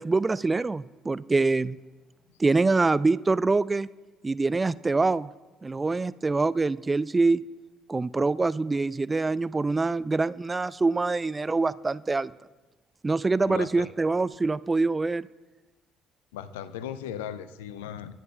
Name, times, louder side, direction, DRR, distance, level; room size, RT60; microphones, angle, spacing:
voice 1, 0.0-1.8 2.4-3.9 4.2-5.3 5.6-7.4 7.9-12.3 13.0-15.3, right 3 dB, 25° right, 18 dB, 0.4 m, -25 dB
voice 2, 13.4-13.9 16.3-18.1, left 10 dB, 75° left, 14 dB, 0.6 m, -37 dB
29.5 x 10.5 x 2.3 m, 1.2 s
figure-of-eight pair, 50°, 0 cm